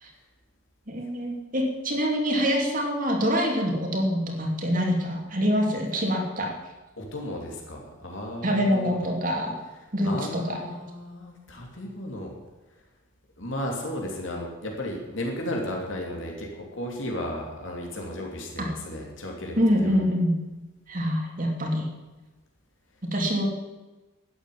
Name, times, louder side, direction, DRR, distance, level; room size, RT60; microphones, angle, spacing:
voice 1, 0.9-6.5 8.4-9.6 9.9-10.6 18.6-18.7 19.6-20.4 20.9-21.9 23.0-23.5, equal, 40° right, 1 dB, 3.0 m, -25 dB
voice 2, 7.0-9.2 9.6-12.3 13.4-20.0, left 1 dB, 65° left, 0 dB, 3.1 m, -34 dB
12.0 x 9.9 x 9.4 m, 1.2 s
head